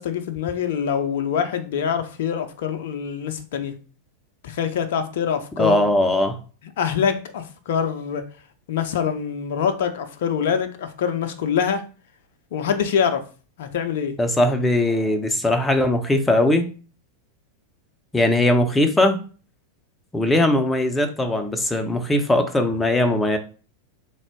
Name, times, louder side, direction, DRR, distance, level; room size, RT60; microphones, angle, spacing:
voice 1, 0.0-3.7 4.4-5.8 6.8-8.2 8.7-11.8 12.5-13.2 13.6-14.2, left 7 dB, 55° left, 0.5 m, -24 dB
voice 2, 5.6-6.4 14.2-16.7 18.1-19.2 20.1-23.4, left 1 dB, 10° left, 0.5 m, -20 dB
3.5 x 2.1 x 3.4 m
figure-of-eight pair, 90°, 0 cm